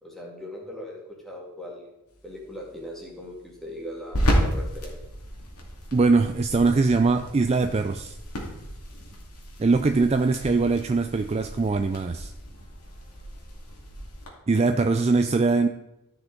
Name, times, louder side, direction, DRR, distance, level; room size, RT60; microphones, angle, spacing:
voice 1, 0.0-1.8 2.2-5.0, left 1 dB, ahead, -3 dB, 2.1 m, -39 dB
sound 1, 2.1-14.3, equal, 90° left, 2.3 m, -33 dB
voice 2, 5.9-8.2 9.6-12.3 14.5-15.7, right 3 dB, 30° right, 7 dB, 0.3 m, -22 dB
13.5 x 5.8 x 3.9 m, 0.90 s
head